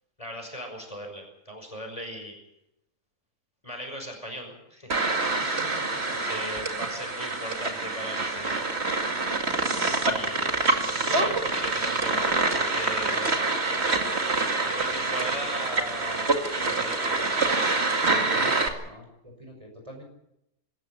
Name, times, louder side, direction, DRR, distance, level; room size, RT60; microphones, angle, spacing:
voice 1, 0.2-2.4 3.6-5.0 6.1-8.7 10.1-12.3 12.6-13.3 14.7-17.4, equal, 20° left, 3 dB, 5.7 m, -38 dB
sound 1, 4.9-18.7, right 3 dB, 45° right, 2.5 m, -26 dB
voice 2, 5.4-6.4 15.2-15.3 18.0-20.0, left 1 dB, 20° right, 2 dB, 5.8 m, -47 dB
25.5 x 14.0 x 8.5 m, 0.83 s
omnidirectional pair, 1.5 m